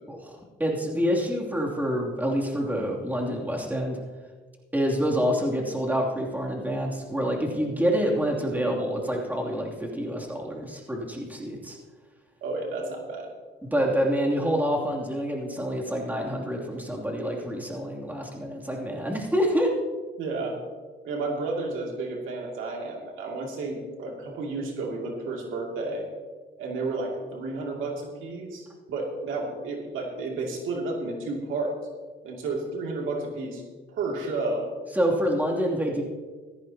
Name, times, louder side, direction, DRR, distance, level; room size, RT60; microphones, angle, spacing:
voice 1, 0.1-4.0 4.7-11.8 13.6-19.7 34.9-36.0, equal, 10° right, -2 dB, 2.9 m, -27 dB
voice 2, 12.4-13.3 20.2-20.6 21.0-26.1 26.6-31.8 32.2-33.6 33.9-34.7, right 3 dB, 85° right, 0 dB, 2.6 m, -31 dB
16.0 x 14.0 x 2.9 m, 1.4 s
cardioid pair, 90°, 20 cm